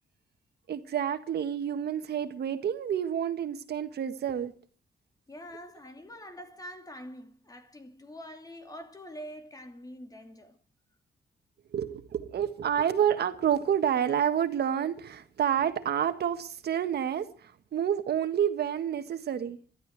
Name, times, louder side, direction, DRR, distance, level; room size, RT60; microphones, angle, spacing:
voice 1, 0.7-4.5 11.7-19.6, right 9 dB, 70° right, 1.6 m, -29 dB
voice 2, 5.3-10.6, equal, 20° left, 2.8 m, -45 dB
22.5 x 13.5 x 4.7 m
cardioid pair, 120°, 17 cm